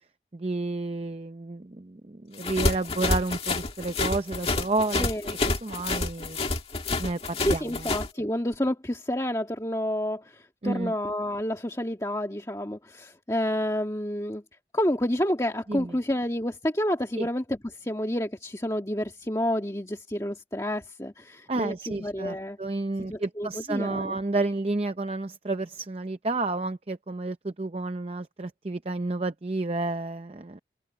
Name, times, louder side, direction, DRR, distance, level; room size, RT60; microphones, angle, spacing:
voice 1, 0.3-6.4 7.0-7.9 10.6-10.9 15.7-15.9 17.2-17.3 21.5-30.6, right 2 dB, 35° right, 0.6 m, -31 dB
sound 1, 2.4-8.1, left 3 dB, 35° left, 2.1 m, -28 dB
voice 2, 5.0-5.4 7.4-14.4 14.7-22.6 23.1-24.2, left 1 dB, 20° left, 1.7 m, -29 dB
head